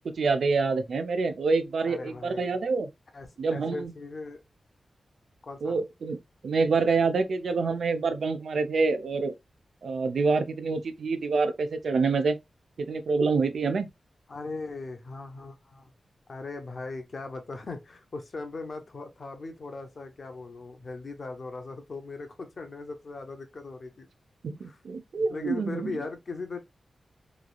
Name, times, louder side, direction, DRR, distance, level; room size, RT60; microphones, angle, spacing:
voice 1, 0.0-2.9 3.4-3.9 5.6-6.2 6.4-9.3 9.8-12.4 12.8-13.9 24.4-25.9, right 4 dB, 70° right, 0.4 m, -26 dB
voice 2, 1.9-2.6 3.1-4.4 5.4-5.8 14.3-15.9 16.3-24.1 24.6-24.8 25.2-26.6, left 3 dB, 45° left, 0.6 m, -39 dB
3.1 x 2.4 x 2.3 m
wide cardioid pair, 170°, 0 cm